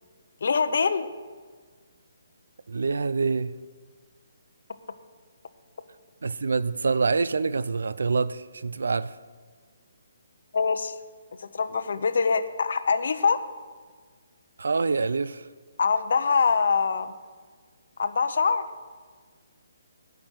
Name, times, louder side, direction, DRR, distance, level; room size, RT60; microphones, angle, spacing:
voice 1, 0.4-1.1 10.5-10.9 11.4-13.4 15.8-17.1 18.0-18.6, left 5 dB, 55° left, 11 dB, 0.7 m, -24 dB
voice 2, 2.7-3.5 6.2-9.2 14.6-15.5, right 4 dB, 85° right, 16 dB, 0.4 m, -26 dB
15.5 x 5.9 x 6.3 m, 1.5 s
hypercardioid pair, 175°, 0 cm